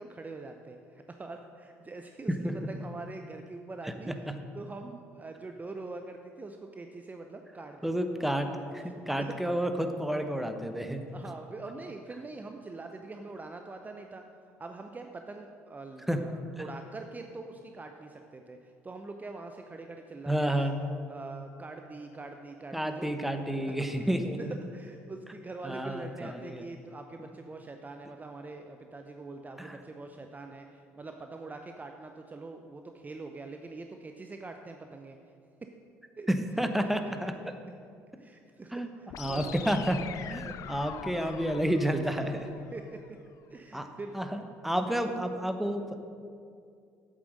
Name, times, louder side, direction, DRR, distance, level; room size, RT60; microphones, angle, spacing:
voice 1, 0.0-4.1 4.5-7.9 9.2-9.6 11.1-14.2 14.6-20.7 21.1-23.7 24.5-35.2 35.6-35.7 36.1-36.3 37.0-37.1 37.7-37.8 38.2-39.8 40.4-40.6 42.7-43.2 43.5-44.2 44.9-45.0, right 3 dB, 25° right, 5 dB, 0.7 m, -44 dB
voice 2, 3.8-4.3 7.8-11.0 16.1-16.2 16.6-16.7 20.3-20.8 22.7-24.6 25.6-26.7 27.2-27.3 29.6-29.8 36.3-37.5 38.7-38.9 39.2-40.0 40.3-40.4 40.7-42.5 43.7-43.9 44.1-46.0, equal, 5° right, 7 dB, 1.0 m, -30 dB
sound 1, 39.1-43.1, left 9 dB, 50° left, 0.5 m, -44 dB
8.4 x 7.6 x 6.4 m, 2.4 s
hypercardioid pair, 55°, 7 cm